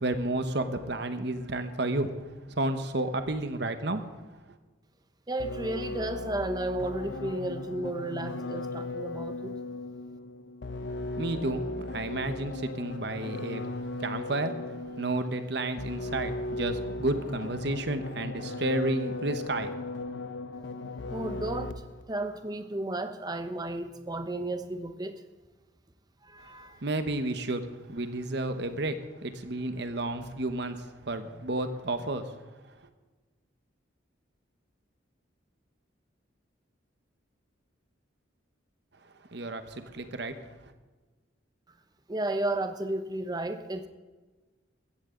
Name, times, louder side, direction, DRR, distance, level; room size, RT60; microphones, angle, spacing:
voice 1, 0.0-2.1 2.5-4.1 11.1-13.6 14.0-14.5 15.0-19.8 26.8-32.3 39.3-40.4, right 2 dB, 60° right, 9 dB, 1.1 m, -31 dB
voice 2, 5.3-9.5 21.1-25.1 26.2-26.8 42.1-43.9, right 2 dB, 20° right, 8 dB, 0.9 m, -33 dB
sound 1, 5.4-22.0, left 2 dB, 65° left, 0.7 m, -37 dB
16.0 x 14.0 x 3.9 m, 1.3 s
head